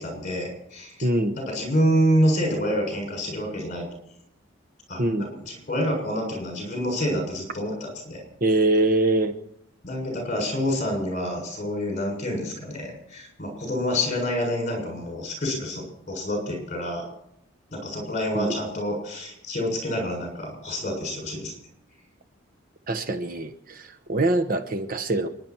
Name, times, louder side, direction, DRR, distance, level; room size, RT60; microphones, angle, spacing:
voice 1, 0.0-1.1 1.3-3.9 4.9-8.2 9.8-17.0 17.7-21.5, equal, 35° left, 7.0 m, -27 dB
voice 2, 1.0-1.4 5.0-5.3 8.4-9.4 18.3-18.6 22.9-25.3, right 2 dB, 40° right, 1.0 m, -23 dB
29.0 x 11.0 x 4.5 m
head